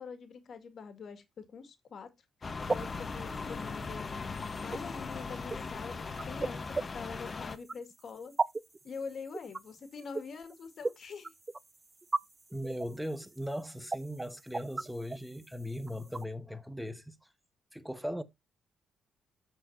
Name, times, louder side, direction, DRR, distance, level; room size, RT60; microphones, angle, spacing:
voice 1, 0.0-2.1 2.4-4.1 4.6-8.4 8.8-11.3, left 5 dB, 55° left, 2.0 m, -45 dB
sound 1, 2.4-7.6, left 4 dB, 35° left, 1.0 m, -39 dB
sound 2, 2.6-16.3, right 3 dB, 25° right, 0.4 m, -38 dB
voice 2, 12.5-17.1 17.7-18.2, equal, ahead, 1.1 m, -38 dB
13.5 x 4.5 x 2.7 m
cardioid pair, 90°, 0 cm